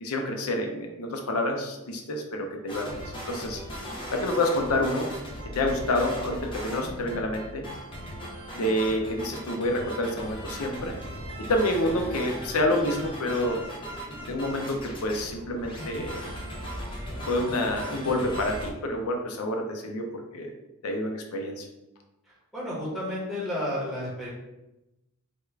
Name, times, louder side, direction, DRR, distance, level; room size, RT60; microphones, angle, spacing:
voice 1, 0.0-3.6 4.1-5.1 5.5-7.7 8.6-11.0 11.4-13.7 14.1-16.2 17.3-20.5 20.8-21.7, left 1 dB, 75° left, 3 dB, 0.6 m, -28 dB
sound 1, 2.7-18.7, equal, 20° left, 0.5 m, -38 dB
voice 2, 22.5-24.3, left 1 dB, ahead, -9 dB, 1.1 m, -31 dB
3.5 x 2.4 x 3.2 m, 0.95 s
head